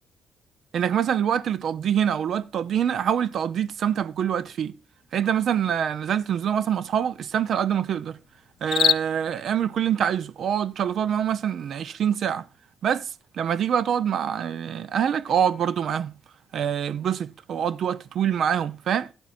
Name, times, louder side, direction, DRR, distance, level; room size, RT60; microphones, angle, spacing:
voice 1, 0.7-4.7 5.1-8.2 8.6-12.5 12.8-16.1 16.5-19.1, right 8 dB, 65° right, 0.5 m, -25 dB
sound 1, 1.5-18.4, left 9 dB, 65° left, 0.5 m, -37 dB
13.5 x 12.5 x 2.5 m
cardioid pair, 90°, 0 cm